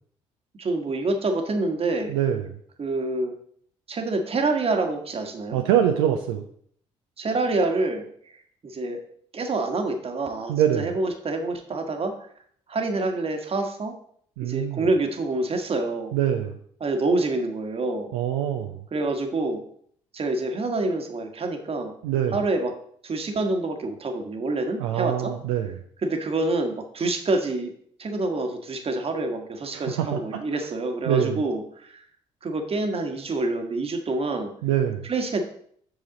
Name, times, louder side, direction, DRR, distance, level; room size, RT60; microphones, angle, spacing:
voice 1, 0.6-2.2 2.8-3.3 3.9-5.6 7.2-8.4 8.6-9.0 9.3-12.1 12.7-13.9 14.4-16.1 16.8-18.1 18.9-19.6 20.1-21.9 22.3-22.7 23.0-25.3 26.0-27.7 28.0-32.0 32.4-34.5 35.1-35.4, right 2 dB, 40° right, 5 dB, 1.4 m, -27 dB
voice 2, 2.1-2.5 5.5-6.4 10.5-10.9 14.4-14.8 16.1-16.6 18.1-18.8 22.0-22.4 24.8-25.8 29.7-30.4 31.1-31.4 34.6-35.1, right 10 dB, 70° right, 4 dB, 0.6 m, -24 dB
8.1 x 6.3 x 3.9 m, 0.62 s
figure-of-eight pair, 45°, 16 cm